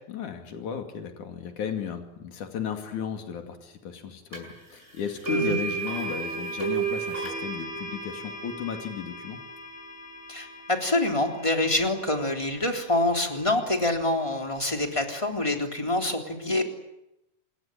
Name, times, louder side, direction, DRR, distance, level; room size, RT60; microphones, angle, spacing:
voice 1, 0.1-9.4, left 7 dB, 90° left, 5 dB, 3.9 m, -35 dB
sound 1, 4.3-4.4 5.2-13.3, right 5 dB, 20° right, 7.1 m, -34 dB
voice 2, 10.3-16.6, left 2 dB, 10° left, 4 dB, 3.4 m, -26 dB
27.5 x 22.0 x 8.9 m, 0.85 s
omnidirectional pair, 3.4 m